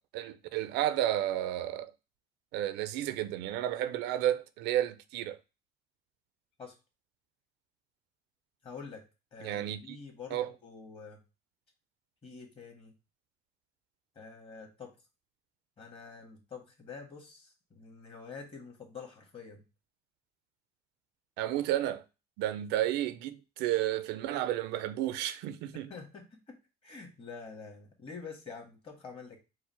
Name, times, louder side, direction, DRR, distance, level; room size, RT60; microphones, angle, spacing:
voice 1, 0.0-1.9 2.5-5.4 9.4-10.0 10.3-10.5 21.4-22.0 22.4-25.9, right 12 dB, 90° right, 0.4 m, -32 dB
voice 2, 8.6-9.0 9.3-11.2 12.2-12.9 14.1-14.9 15.8-19.6 25.7-26.6 26.8-29.4, left 5 dB, 35° left, 1.5 m, -47 dB
4.6 x 2.1 x 4.3 m
cardioid pair, 110°, 17 cm